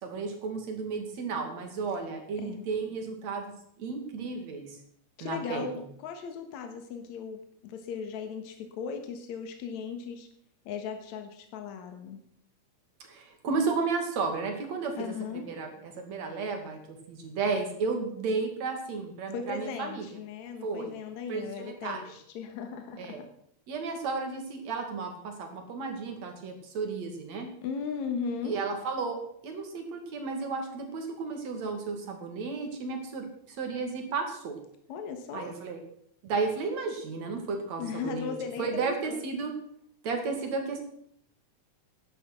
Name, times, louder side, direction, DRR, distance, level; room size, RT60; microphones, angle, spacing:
voice 1, 0.0-3.5 3.8-4.8 5.2-5.7 13.0-20.1 20.6-20.9 21.3-22.1 23.0-23.2 23.7-27.5 28.4-34.5 35.3-35.8 36.2-39.5 40.0-40.8, right 4 dB, 65° right, 4 dB, 3.4 m, -33 dB
voice 2, 5.2-10.3 10.7-12.2 15.0-15.4 19.3-23.3 27.6-28.6 34.9-35.5 37.8-39.2, left 6 dB, 75° left, 6 dB, 2.6 m, -37 dB
12.5 x 10.0 x 5.9 m, 0.67 s
omnidirectional pair, 3.4 m